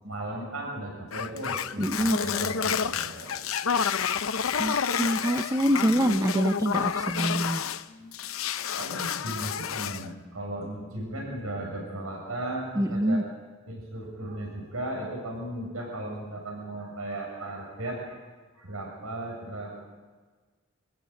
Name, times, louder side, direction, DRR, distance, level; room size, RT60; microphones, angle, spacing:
voice 1, 0.0-3.5 7.9-8.1 8.8-13.2 13.7-18.2 18.5-19.7, right 1 dB, 90° right, -1 dB, 6.8 m, -36 dB
sound 1, 1.1-7.8 8.1-10.1, left 7 dB, 75° left, 0.7 m, -29 dB
voice 2, 1.8-2.2 4.6-7.6 12.8-13.2, equal, 15° right, 8 dB, 0.6 m, -25 dB
25.5 x 15.0 x 9.2 m, 1.4 s
head